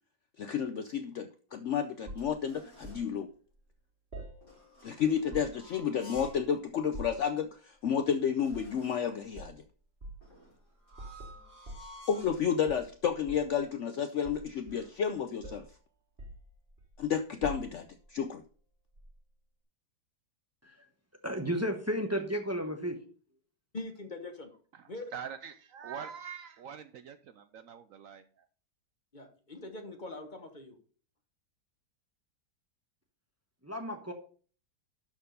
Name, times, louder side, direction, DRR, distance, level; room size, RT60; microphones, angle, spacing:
voice 1, 0.4-3.3 4.8-9.6 12.1-15.7 17.0-18.4, left 7 dB, 65° left, 9 dB, 0.7 m, -31 dB
sound 1, 1.5-3.1 4.4-6.5 6.9-7.0 7.6-7.7 7.9-9.2 10.2-12.4 13.1-13.4 13.6-14.9, equal, 85° left, 5.0 m, -55 dB
sound 2, 2.1-3.1 4.1-4.9 5.1-5.7 6.1-6.5 6.9-7.3 8.5-8.8 9.3-9.6 10.0-10.3 10.9-12.4 12.7-13.6 14.2-15.1 15.4-15.7 16.2-17.0 17.4-18.0 19.0-19.1, right 1 dB, 35° right, 2.0 m, -46 dB
voice 2, 21.2-23.0 33.6-34.1, equal, 10° right, 5 dB, 0.9 m, -33 dB
voice 3, 23.7-24.5 24.9-25.1 29.1-30.8, left 2 dB, 30° left, 6 dB, 1.1 m, -42 dB
voice 4, 24.7-28.5, right 7 dB, 70° right, 11 dB, 0.8 m, -44 dB
12.0 x 4.5 x 5.3 m, 0.42 s
omnidirectional pair, 1.7 m